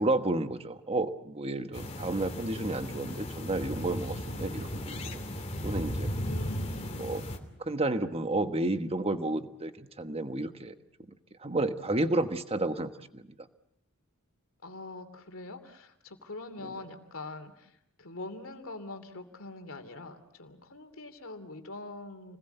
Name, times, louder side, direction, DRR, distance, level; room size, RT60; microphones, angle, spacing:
voice 1, 0.0-6.1 7.0-7.2 7.6-10.7 11.4-13.2 16.6-16.7, right 2 dB, 25° right, 8 dB, 1.3 m, -31 dB
sound 1, 1.7-7.4, equal, 30° left, 2.9 m, -36 dB
voice 2, 6.2-7.1 14.6-22.4, left 2 dB, 65° left, 8 dB, 2.9 m, -44 dB
29.0 x 20.5 x 8.0 m, 0.79 s
head